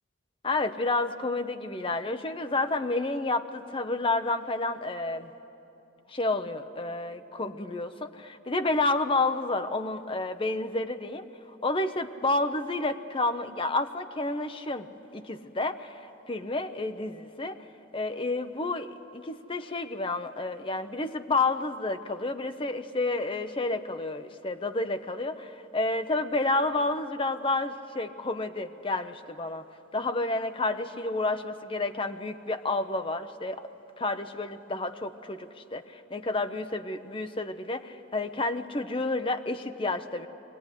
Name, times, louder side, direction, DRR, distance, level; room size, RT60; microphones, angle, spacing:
voice 1, 0.4-5.3 6.1-14.9 15.1-17.6 17.9-29.7 29.9-33.7 34.0-40.3, left 2 dB, 25° left, 8 dB, 0.7 m, -30 dB
23.0 x 17.0 x 9.8 m, 2.9 s
head